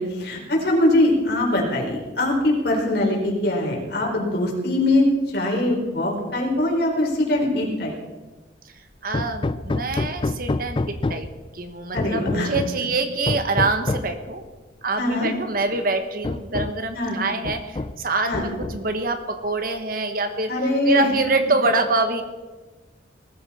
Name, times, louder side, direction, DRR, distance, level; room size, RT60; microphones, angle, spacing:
voice 1, 0.0-7.9 11.9-12.5 15.0-15.3 16.9-17.2 18.2-18.5 20.5-21.1, left 1 dB, 60° left, -1 dB, 4.4 m, -22 dB
voice 2, 9.0-11.3 11.5-14.4 14.8-20.5 20.9-22.2, right 3 dB, 50° right, 7 dB, 1.3 m, -25 dB
Hammer, 9.1-11.4 12.0-12.8 13.3-14.2 15.2-15.3 15.7-15.8 16.2-16.9 17.4-18.1 18.3-19.0, left 2 dB, 25° left, 0.4 m, -27 dB
20.0 x 14.5 x 4.3 m, 1.2 s
head